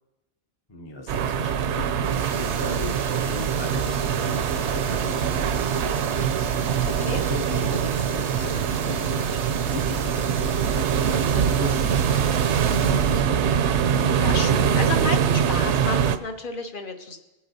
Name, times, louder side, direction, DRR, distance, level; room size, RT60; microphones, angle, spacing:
voice 1, 0.7-6.3 7.3-10.9 11.6-13.7, left 2 dB, 25° left, 3 dB, 0.7 m, -37 dB
sound 1, 1.1-16.2, right 8 dB, 85° right, 0.9 m, -23 dB
sound 2, 2.0-13.2, right 5 dB, 45° right, 0.6 m, -36 dB
voice 2, 11.1-11.5 14.0-17.2, left 3 dB, 50° left, 5 dB, 1.1 m, -32 dB
20.5 x 8.5 x 2.7 m, 1.0 s
omnidirectional pair, 1.1 m